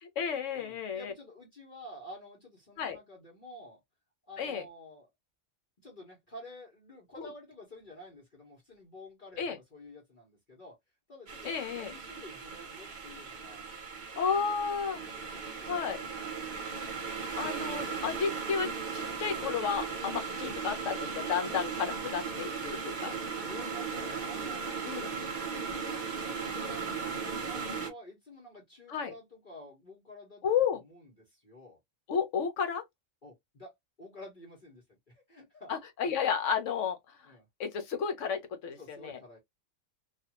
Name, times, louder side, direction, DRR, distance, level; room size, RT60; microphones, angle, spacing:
voice 1, 0.0-1.1 2.8-3.0 4.4-4.6 7.2-7.3 9.4-9.6 11.4-11.9 14.2-15.0 15.7-16.0 17.4-22.9 24.8-25.1 28.9-29.1 30.4-30.8 32.1-32.8 35.7-37.3 37.6-39.2, left 7 dB, 70° left, 1.1 m, -32 dB
voice 2, 0.6-3.8 4.3-5.1 5.8-10.8 11.1-13.6 15.0-16.3 22.9-30.4 30.9-31.8 33.2-34.8 35.3-35.7 36.0-36.2 37.3-37.5 38.8-39.4, left 1 dB, 40° left, 1.2 m, -50 dB
sound 1, 11.3-27.9, right 5 dB, 40° right, 0.9 m, -37 dB
2.6 x 2.4 x 2.8 m
omnidirectional pair, 1.3 m